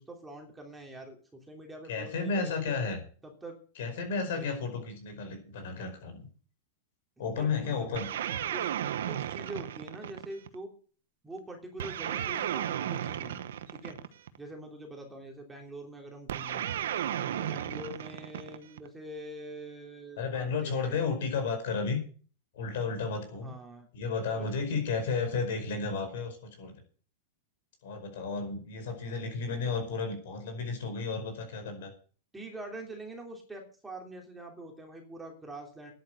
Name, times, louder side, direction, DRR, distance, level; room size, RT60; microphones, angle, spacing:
voice 1, 0.0-2.7 3.2-3.6 4.4-4.5 7.2-7.9 8.2-8.7 9.1-10.7 11.2-13.4 13.7-14.0 14.4-16.7 17.3-21.0 21.4-21.5 23.4-23.9 24.3-25.4 28.9-29.8 31.6-31.7 32.3-35.9, right 1 dB, 10° right, 2 dB, 3.2 m, -45 dB
voice 2, 1.9-3.0 3.8-6.3 7.2-8.1 20.2-22.0 22.5-23.5 23.9-26.7 27.8-31.9, left 4 dB, 70° left, 6 dB, 5.0 m, -33 dB
sound 1, 7.9-10.5 11.8-14.4 16.3-18.9, right 10 dB, 80° right, 1.0 m, -34 dB
10.5 x 8.8 x 8.0 m, 0.42 s
hypercardioid pair, 135°, 0 cm